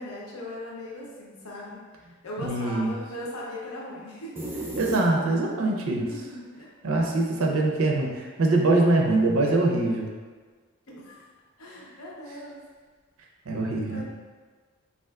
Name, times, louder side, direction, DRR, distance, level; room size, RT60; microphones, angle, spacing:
voice 1, 0.0-1.8 2.2-4.4 6.1-6.7 10.9-11.3 11.6-12.6 13.8-14.0, left 1 dB, 80° left, -4 dB, 0.7 m, -39 dB
voice 2, 2.4-2.9 4.8-6.1 6.8-10.1 13.5-14.0, right 2 dB, 75° right, 0 dB, 0.5 m, -23 dB
sound 1, 4.4-5.6, right 1 dB, 10° right, 0.3 m, -34 dB
3.5 x 2.5 x 2.3 m, 1.5 s
head